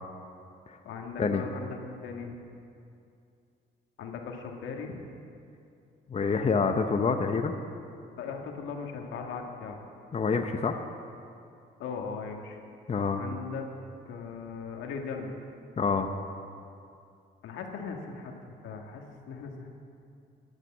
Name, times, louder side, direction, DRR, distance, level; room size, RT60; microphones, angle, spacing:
voice 1, 0.8-2.3 4.0-5.0 8.2-9.8 11.8-12.6 13.2-13.7 14.0-15.3 17.4-18.3 18.6-19.7, left 5 dB, 85° left, 2 dB, 1.7 m, -38 dB
voice 2, 6.1-7.5 10.1-10.8 12.9-13.2 15.8-16.1, left 5 dB, 30° left, 6 dB, 0.8 m, -27 dB
12.5 x 9.0 x 7.3 m, 2.5 s
cardioid pair, 90°, 20 cm